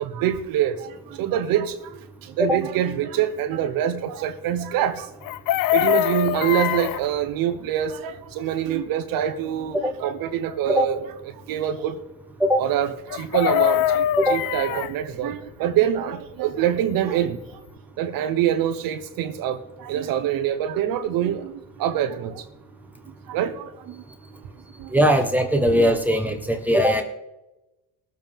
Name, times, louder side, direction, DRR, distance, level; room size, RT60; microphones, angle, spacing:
voice 1, 0.0-1.7 2.2-5.1 5.7-11.0 11.5-11.9 12.6-14.0 14.3-17.4 18.0-22.4 23.3-23.7 24.8-24.9, right 10 dB, 70° right, 1.1 m, -25 dB
Chicken rooster, 5.2-7.0 13.1-14.9 17.2-17.3 17.5-17.8, left 13 dB, 60° left, 0.4 m, -23 dB
voice 2, 24.9-27.0, equal, 5° right, 1.3 m, -20 dB
21.0 x 7.5 x 3.6 m
cardioid pair, 125°, 36 cm